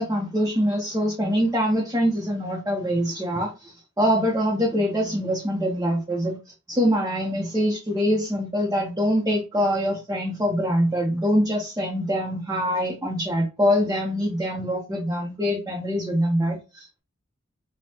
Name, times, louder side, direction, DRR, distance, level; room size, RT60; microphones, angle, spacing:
voice 1, 0.0-6.4 6.7-17.0, equal, 15° right, -3 dB, 0.7 m, -24 dB
5.2 x 2.2 x 2.8 m, 0.29 s
head